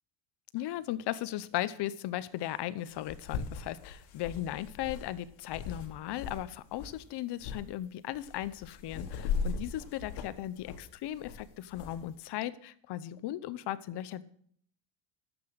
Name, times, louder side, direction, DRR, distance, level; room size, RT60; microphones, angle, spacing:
voice 1, 0.5-14.2, left 13 dB, 60° left, 16 dB, 0.9 m, -37 dB
sound 1, 0.6-0.7 2.5-2.6 2.9-6.4 6.7-7.0 7.4-7.6 8.1-12.0, left 5 dB, 85° left, 1.9 m, -39 dB
11.5 x 8.0 x 6.6 m, 0.63 s
cardioid pair, 115°, 47 cm